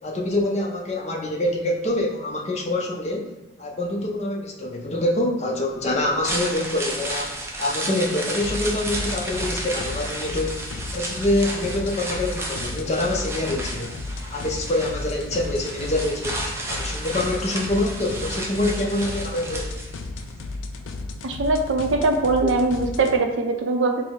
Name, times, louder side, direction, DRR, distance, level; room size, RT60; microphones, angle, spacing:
voice 1, 0.0-3.2 3.6-10.6 10.9-14.0 14.3-16.4 16.7-19.8, left 1 dB, 35° left, -1 dB, 0.6 m, -25 dB
sound 1, 6.1-20.2 20.5-20.6, right 1 dB, 15° right, 0.4 m, -33 dB
sound 2, 8.4-23.2, left 2 dB, 90° left, 0.4 m, -34 dB
voice 2, 21.2-24.0, right 3 dB, 90° right, 4 dB, 0.5 m, -21 dB
4.6 x 2.0 x 3.6 m, 1.1 s
head